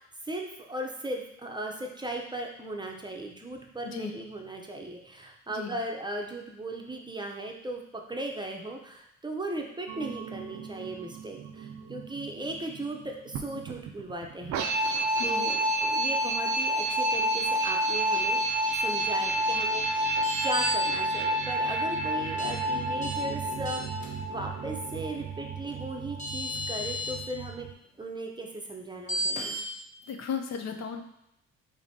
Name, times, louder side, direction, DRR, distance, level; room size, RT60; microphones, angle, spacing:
voice 1, 0.0-18.4 18.8-20.1 20.4-27.7 28.0-29.6, right 1 dB, 15° right, 1 dB, 0.6 m, -37 dB
sound 1, 9.9-27.7, right 1 dB, 75° right, 0.5 m, -30 dB
voice 2, 15.2-15.5 30.1-31.0, left 6 dB, 60° left, 5 dB, 0.5 m, -35 dB
sound 2, 20.2-20.8 22.4-22.5 23.0-23.1 23.6-24.1 25.7-25.8 26.2-27.1 29.1-29.6, equal, 25° left, 1.0 m, -32 dB
5.0 x 2.7 x 2.7 m, 0.80 s
cardioid pair, 80°, 29 cm